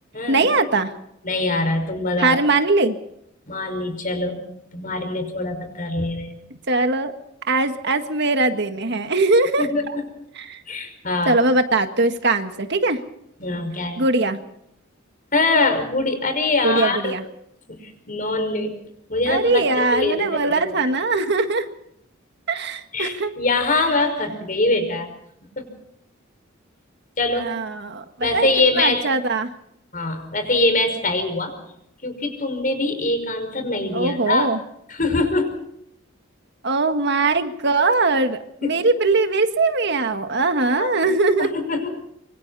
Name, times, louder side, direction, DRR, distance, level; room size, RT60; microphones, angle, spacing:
voice 1, 0.3-0.9 2.2-3.0 6.7-7.1 7.5-9.7 10.4-10.6 11.3-13.0 14.0-14.4 16.6-17.2 19.3-21.7 22.5-23.3 27.4-28.5 28.7-29.5 33.9-34.6 36.6-41.5, right 3 dB, 55° right, 7 dB, 1.8 m, -21 dB
voice 2, 1.2-2.4 3.5-4.4 4.7-6.3 9.6-10.0 10.7-11.4 13.4-14.0 15.3-17.1 17.7-18.7 19.1-20.6 22.9-25.1 25.6-25.7 27.2-27.5 28.2-29.1 29.9-31.5 32.0-34.5 34.9-35.6 38.6-38.8 40.8-41.1 41.4-41.9, left 2 dB, 40° left, 8 dB, 5.4 m, -23 dB
25.5 x 25.5 x 4.2 m, 0.75 s
head